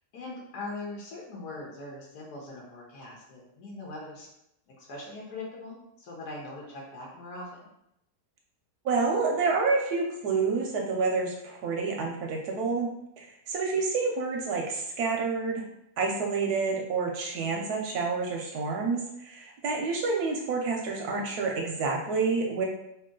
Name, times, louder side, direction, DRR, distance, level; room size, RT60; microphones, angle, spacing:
voice 1, 0.1-4.3 4.8-7.7, left 2 dB, 65° left, -3 dB, 1.3 m, -41 dB
voice 2, 8.8-12.9 13.2-15.6 16.0-22.6, right 4 dB, 70° right, 0 dB, 1.0 m, -28 dB
2.9 x 2.7 x 3.7 m, 0.81 s
omnidirectional pair, 1.9 m